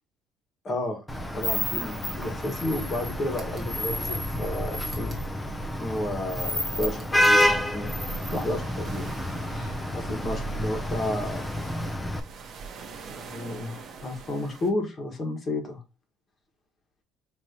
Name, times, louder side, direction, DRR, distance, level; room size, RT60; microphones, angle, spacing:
voice 1, 0.6-5.1 5.8-7.9 8.3-9.1 9.5-11.5 13.1-15.8, left 1 dB, 30° left, 3 dB, 1.4 m, -32 dB
Vehicle horn car horn honking / Traffic noise roadway noise, 1.1-12.2, left 1 dB, 10° left, 0.6 m, -28 dB
sound 1, 3.3-3.7 4.8-5.3 6.8-7.5, right 2 dB, 15° right, 1.3 m, -48 dB
sound 2, 7.4-14.7, right 4 dB, 40° right, 0.9 m, -44 dB
5.1 x 2.9 x 2.9 m, 0.26 s
cardioid pair, 145°, 0 cm